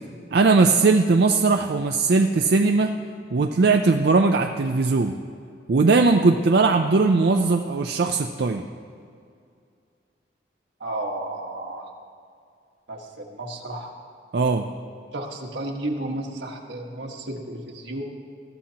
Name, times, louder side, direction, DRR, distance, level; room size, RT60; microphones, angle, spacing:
voice 1, 0.3-2.9 3.3-5.1 5.7-8.6 14.3-14.7, right 3 dB, 65° right, 5 dB, 0.4 m, -19 dB
voice 2, 10.8-11.9 12.9-13.9 15.1-18.0, right 1 dB, 85° right, 1 dB, 1.5 m, -32 dB
20.0 x 13.0 x 2.9 m, 2.3 s
head